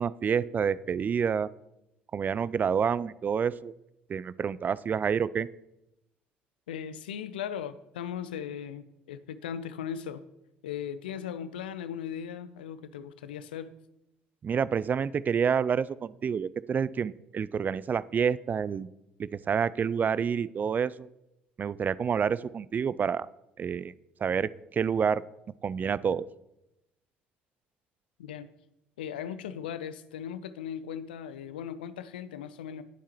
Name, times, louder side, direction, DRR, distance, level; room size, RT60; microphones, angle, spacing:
voice 1, 0.0-1.5 2.1-3.7 4.1-5.5 14.4-18.9 19.2-21.1 21.6-23.3 23.6-23.9 24.2-25.2 25.6-26.3, right 7 dB, 35° right, 19 dB, 0.4 m, -28 dB
voice 2, 6.7-10.2 10.6-13.7 28.2-28.5 29.0-32.8, left 8 dB, 75° left, 14 dB, 0.6 m, -38 dB
19.5 x 8.2 x 3.1 m, 0.88 s
figure-of-eight pair, 55°, 5 cm